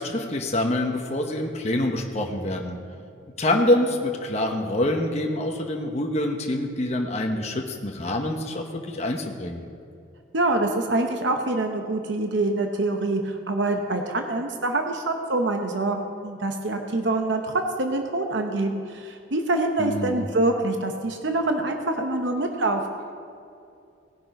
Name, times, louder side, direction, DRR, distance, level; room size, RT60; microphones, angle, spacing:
voice 1, 0.0-2.8 3.4-9.6 19.8-20.2, left 1 dB, 35° left, 2 dB, 0.9 m, -26 dB
voice 2, 10.3-22.8, right 2 dB, 65° right, 4 dB, 0.8 m, -25 dB
18.0 x 6.7 x 5.2 m, 2.5 s
head